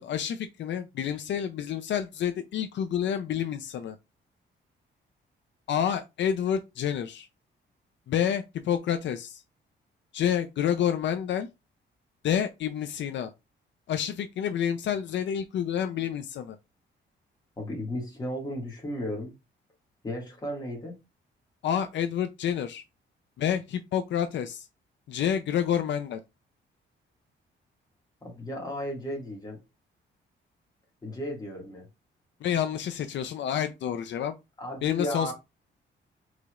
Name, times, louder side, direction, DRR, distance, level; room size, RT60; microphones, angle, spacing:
voice 1, 0.0-4.0 5.7-7.3 8.1-9.4 10.1-11.5 12.2-13.3 13.9-16.6 21.6-22.8 23.4-24.7 25.1-26.2 32.4-34.3 34.8-35.3, left 9 dB, 65° left, 0.5 m, -29 dB
voice 2, 17.6-19.3 20.0-21.0 28.2-29.6 31.0-31.9 34.6-35.3, left 1 dB, 20° left, 1.8 m, -34 dB
4.8 x 4.0 x 2.4 m
cardioid pair, 150°, 20 cm